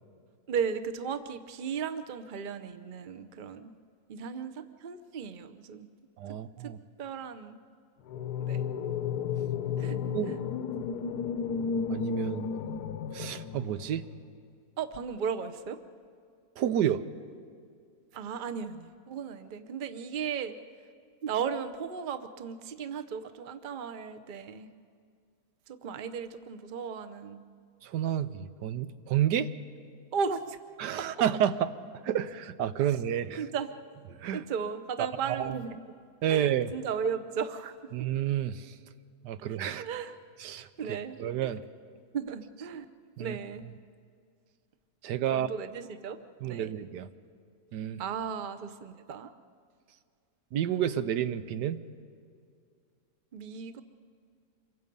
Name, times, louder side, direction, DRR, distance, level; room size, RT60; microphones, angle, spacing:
voice 1, 0.5-3.7 4.1-5.9 6.3-7.6 8.4-8.7 9.8-10.0 10.3-10.4 14.8-15.8 18.1-20.6 21.2-24.7 25.7-27.4 30.1-30.6 31.0-31.1 32.8-33.0 33.4-33.7 34.3-35.8 36.3-37.7 39.7-40.2 40.8-41.5 42.1-42.9 43.2-43.7 45.3-46.2 46.5-46.7 48.0-49.3 53.3-53.8, right 6 dB, 40° right, 11 dB, 0.8 m, -36 dB
voice 2, 6.2-6.8 10.1-10.3 11.9-12.5 13.1-14.1 16.6-17.0 27.8-29.5 30.8-31.7 32.0-33.4 34.2-34.4 35.0-35.1 35.4-35.6 36.2-36.7 37.9-38.7 39.2-39.9 40.4-40.7 41.2-41.6 43.2-43.4 45.0-45.5 46.4-47.1 47.7-48.0 50.5-51.8, right 10 dB, 85° right, 12 dB, 1.4 m, -30 dB
sound 1, 8.1-14.2, left 6 dB, 80° left, 1.3 m, -33 dB
27.0 x 23.5 x 5.4 m, 2.3 s
omnidirectional pair, 1.7 m